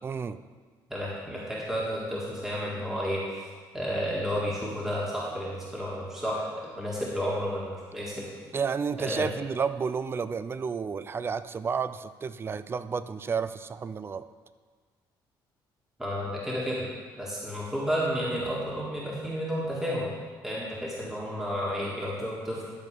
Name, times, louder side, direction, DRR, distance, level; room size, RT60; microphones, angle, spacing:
voice 1, 0.0-0.4 8.5-14.3, right 6 dB, 25° right, 14 dB, 0.3 m, -31 dB
voice 2, 0.9-3.2 3.7-8.3 9.0-9.3 16.0-16.9 17.2-20.1 20.4-22.7, equal, 5° right, -6 dB, 1.7 m, -31 dB
12.0 x 4.3 x 6.7 m, 1.5 s
cardioid pair, 130°, 9 cm